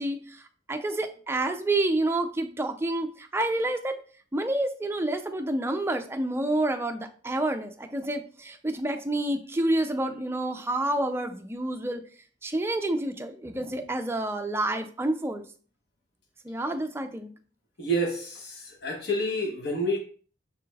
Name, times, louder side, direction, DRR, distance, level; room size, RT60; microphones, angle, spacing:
voice 1, 0.0-4.0 4.3-12.0 12.4-15.4 16.4-17.3, right 1 dB, 15° right, 0.4 m, -29 dB
voice 2, 17.8-20.0, right 1 dB, 60° left, 1.1 m, -28 dB
4.9 x 3.4 x 2.3 m
head